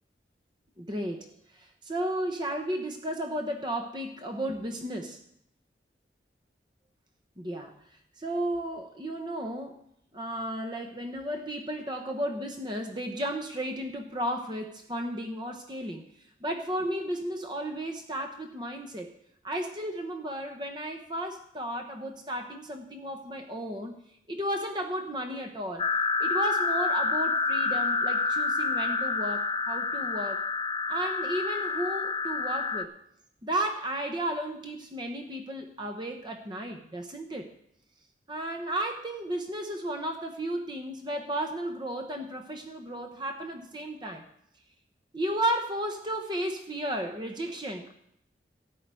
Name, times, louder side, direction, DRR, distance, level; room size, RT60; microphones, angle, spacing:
voice 1, 0.8-1.3 1.8-5.2 7.4-7.7 8.2-9.8 10.1-16.1 16.4-19.1 19.4-23.9 24.3-25.9 26.2-30.4 30.9-32.9 33.4-37.5 38.3-44.2 45.1-47.9, right 1 dB, 25° right, 4 dB, 1.0 m, -33 dB
sound 1, 25.8-32.9, left 4 dB, 25° left, 0.5 m, -28 dB
13.5 x 5.0 x 9.0 m, 0.73 s
head